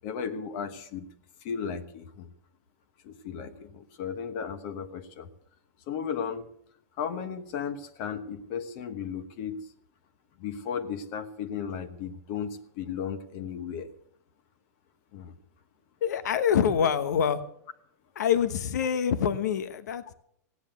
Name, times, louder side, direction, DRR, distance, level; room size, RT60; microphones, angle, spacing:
voice 1, 0.0-1.1 1.4-2.3 3.0-5.3 5.9-6.5 7.0-9.6 10.4-13.9 15.1-15.3, left 7 dB, 45° left, 9 dB, 1.2 m, -35 dB
voice 2, 16.0-17.4 18.1-20.1, left 8 dB, 90° left, 11 dB, 1.1 m, -25 dB
16.5 x 9.7 x 6.9 m, 0.70 s
supercardioid pair, 155°, 9 cm